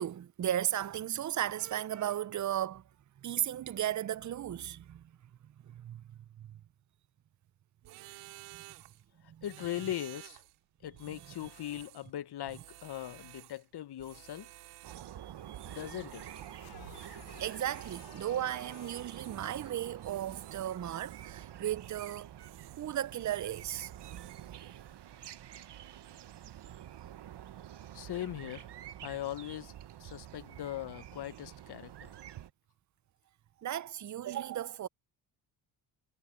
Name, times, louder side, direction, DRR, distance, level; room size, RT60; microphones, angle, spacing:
voice 1, 0.0-2.8 3.2-5.0 5.6-6.0 6.4-6.5 7.8-8.1 8.5-8.6 9.3-9.4 11.0-11.2 15.2-15.8 17.4-22.3 22.8-23.9 33.6-34.9, right 11 dB, 35° right, 0.8 m, -35 dB
sound 1, 7.8-9.0 9.4-10.6 10.9-12.1 12.5-13.6 14.0-15.2 15.5-16.6 16.9-18.3 18.6-19.7 20.0-21.4 21.8-22.9 23.2-24.5, right 22 dB, 85° right, 3.0 m, -54 dB
voice 2, 9.4-10.4 10.8-14.5 15.7-16.2 27.9-28.7 29.0-29.7 30.0-32.1, left 12 dB, 50° left, 1.2 m, -40 dB
sound 2, 14.8-32.5, right 11 dB, 55° right, 1.7 m, -48 dB
sound 3, 15.5-21.4, left 23 dB, 85° left, 1.6 m, -58 dB
hypercardioid pair, 60°, 49 cm